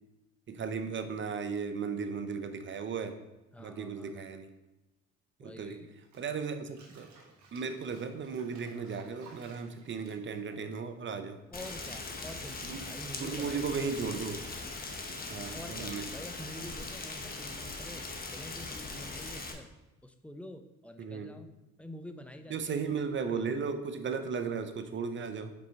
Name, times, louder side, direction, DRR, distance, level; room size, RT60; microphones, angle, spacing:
voice 1, 0.5-3.2 3.6-4.5 5.4-5.8 6.1-7.1 7.5-11.4 12.6-12.8 13.2-14.4 15.3-16.0 21.0-21.3 22.5-25.5, right 5 dB, 40° right, 8 dB, 0.6 m, -36 dB
voice 2, 3.5-4.3 5.4-5.9 11.5-14.2 15.5-18.1 18.3-19.7 20.0-21.5 21.8-23.7, equal, 5° left, 8 dB, 0.5 m, -47 dB
Bathtub (filling or washing), 6.0-11.8 12.1-15.7, right 4 dB, 65° right, 1.4 m, -59 dB
Rain, 11.5-19.5, left 3 dB, 30° left, 0.9 m, -40 dB
5.4 x 4.4 x 4.0 m, 1.0 s
cardioid pair, 90°, 30 cm